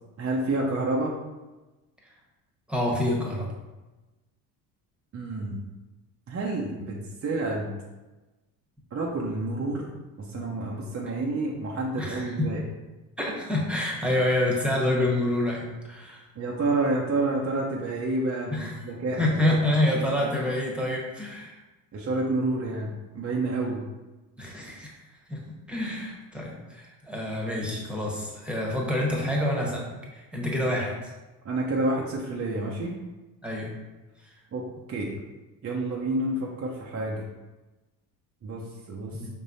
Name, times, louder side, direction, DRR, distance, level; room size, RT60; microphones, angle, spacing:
voice 1, 0.2-1.2 5.1-5.6 6.3-7.0 7.2-7.7 8.9-9.9 10.2-12.6 16.4-19.6 21.9-23.8 31.4-32.9 34.5-35.1 35.6-37.2 38.4-39.2, right 2 dB, 30° right, -3 dB, 0.7 m, -29 dB
voice 2, 2.7-3.5 12.0-12.5 13.2-16.2 18.5-18.7 19.2-21.6 24.4-24.9 25.3-25.4 25.7-29.9 30.1-31.1 33.4-33.7 34.2-34.3 39.1-39.3, left 1 dB, ahead, -3 dB, 1.3 m, -27 dB
5.2 x 3.4 x 2.7 m, 1.1 s
hypercardioid pair, 65°, 48 cm